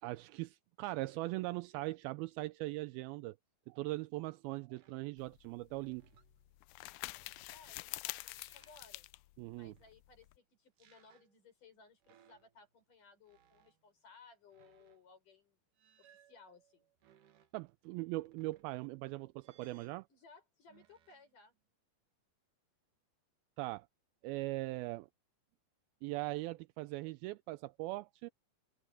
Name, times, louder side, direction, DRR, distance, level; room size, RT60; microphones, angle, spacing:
voice 1, 0.0-3.4 3.7-6.0 9.4-9.7 17.5-20.1 23.6-23.9 24.2-25.1 26.0-28.3, right 20 dB, 85° right, 2.4 m, -40 dB
sound 1, 4.7-5.1 5.7-7.9 8.2-8.9 9.5-10.2 10.8-11.4 12.0-12.8 13.2-13.8 14.5-15.1 15.8-17.5 18.1-19.0 19.4-20.1 20.7-21.4, right 9 dB, 60° right, 2.9 m, -69 dB
sound 2, 5.2-10.4, left 21 dB, 85° left, 2.0 m, -47 dB
voice 2, 7.5-9.1 9.6-15.6 16.3-16.9 20.1-21.6, left 4 dB, 55° left, 8.2 m, -61 dB
omnidirectional pair, 4.4 m